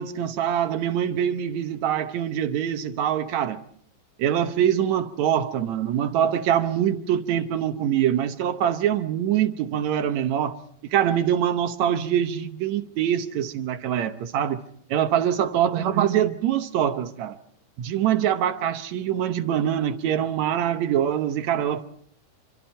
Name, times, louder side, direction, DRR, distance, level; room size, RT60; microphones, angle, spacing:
voice 1, 0.0-3.6 4.2-10.6 10.9-14.6 14.9-17.4 17.8-21.8, right 10 dB, 65° right, 2.0 m, -24 dB
26.5 x 26.0 x 4.4 m
omnidirectional pair, 3.9 m